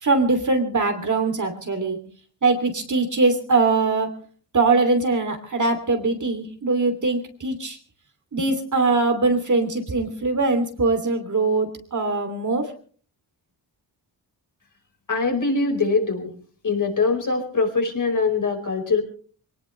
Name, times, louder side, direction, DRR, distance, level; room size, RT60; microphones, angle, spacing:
voice 1, 0.0-2.0 2.4-4.1 4.5-7.8 8.3-12.7, right 3 dB, 40° right, 5 dB, 2.9 m, -22 dB
voice 2, 15.1-16.3 16.6-19.0, left 4 dB, 45° left, 3 dB, 4.9 m, -22 dB
23.0 x 18.5 x 3.3 m, 0.43 s
wide cardioid pair, 115°, 44 cm